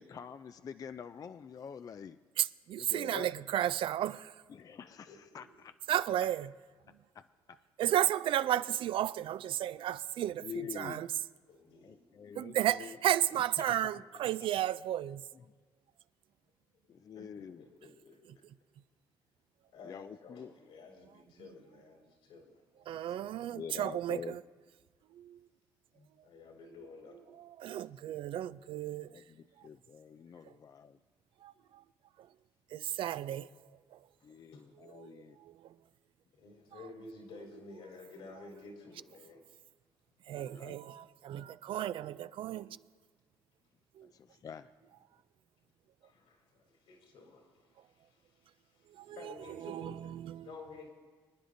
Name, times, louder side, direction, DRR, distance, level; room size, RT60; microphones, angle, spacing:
voice 1, 0.0-2.2 2.8-3.3 4.5-5.7 7.1-7.6 10.4-11.1 11.8-13.0 13.6-14.0 16.9-17.6 19.8-20.5 23.5-24.4 29.1-31.0 34.2-35.4 40.3-40.8 44.0-44.7, left 7 dB, 40° left, 0.3 m, -46 dB
voice 2, 2.4-4.4 5.9-6.5 7.8-11.1 12.4-15.2 22.9-24.4 25.1-25.5 27.4-29.2 29.6-29.7 30.4-30.5 31.4-31.8 32.2-32.3 32.7-33.5 33.9-34.0 34.8-35.8 40.3-42.8 43.9-44.1 48.9-50.5, right 12 dB, 65° right, 0.3 m, -34 dB
voice 3, 5.1-5.4 11.5-12.0 17.2-18.4 19.7-23.1 25.9-27.2 27.8-27.9 34.2-34.7 36.3-39.4 41.3-41.5 46.0-50.1 50.4-50.9, left 3 dB, 85° left, 3.7 m, -53 dB
26.0 x 9.9 x 2.6 m
cardioid pair, 85°, 10 cm